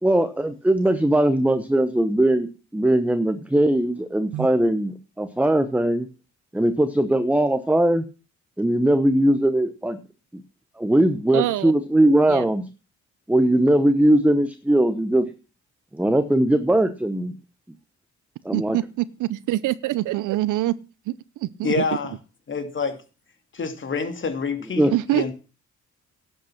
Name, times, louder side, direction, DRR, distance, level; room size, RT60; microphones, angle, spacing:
voice 1, 0.0-6.1 6.5-8.0 8.6-10.0 10.3-10.4 10.8-12.6 13.3-15.3 15.9-17.3 18.4-18.8 24.8-24.9, right 1 dB, 5° right, 11 dB, 1.0 m, -20 dB
voice 2, 11.3-11.7 12.3-12.4 18.5-20.7 21.1-21.8 24.9-25.3, right 15 dB, 80° right, 18 dB, 0.7 m, -25 dB
voice 3, 21.6-22.1 22.5-23.0 23.5-25.3, left 5 dB, 40° left, 8 dB, 2.7 m, -27 dB
11.5 x 8.0 x 5.9 m, 0.33 s
cardioid pair, 90°, 30 cm